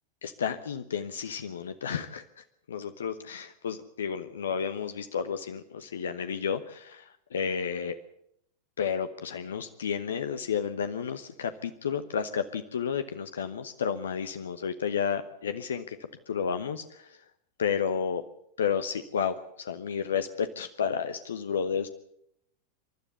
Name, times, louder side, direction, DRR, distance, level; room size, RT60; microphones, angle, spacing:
voice 1, 0.2-2.2 2.7-8.0 8.8-16.0 16.3-17.2 17.6-18.2 18.6-21.9, left 7 dB, 65° left, 10 dB, 0.9 m, -31 dB
27.0 x 12.5 x 8.1 m, 0.75 s
figure-of-eight pair, 90°, 0 cm